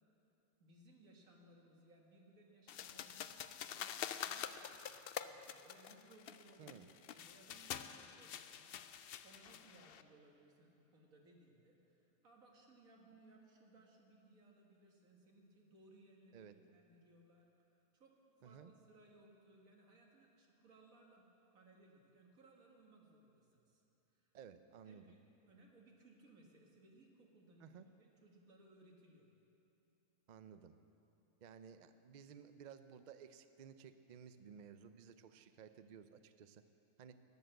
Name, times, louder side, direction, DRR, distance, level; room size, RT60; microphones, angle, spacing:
voice 1, 0.6-3.3 3.6-6.8 7.1-21.3 21.5-23.8 24.1-24.4 24.8-27.7 28.0-29.3, right 2 dB, 65° right, 0 dB, 2.1 m, -65 dB
sound 1, 2.7-10.0, left 9 dB, 90° left, 0.5 m, -47 dB
voice 2, 6.6-6.9 16.3-16.5 18.4-18.7 24.3-25.2 27.6-27.9 30.3-30.8 31.4-36.6 37.0-37.2, right 7 dB, 85° right, 10 dB, 0.4 m, -56 dB
12.0 x 10.5 x 7.8 m, 3.0 s
omnidirectional pair, 1.5 m